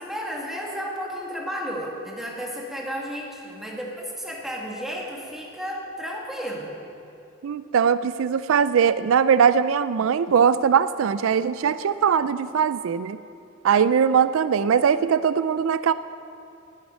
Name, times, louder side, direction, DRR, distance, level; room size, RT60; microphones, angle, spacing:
voice 1, 0.0-6.7, equal, ahead, -3 dB, 2.1 m, -33 dB
voice 2, 7.4-13.2 13.6-15.9, right 7 dB, 80° right, 14 dB, 0.4 m, -20 dB
11.5 x 9.5 x 9.1 m, 2.6 s
head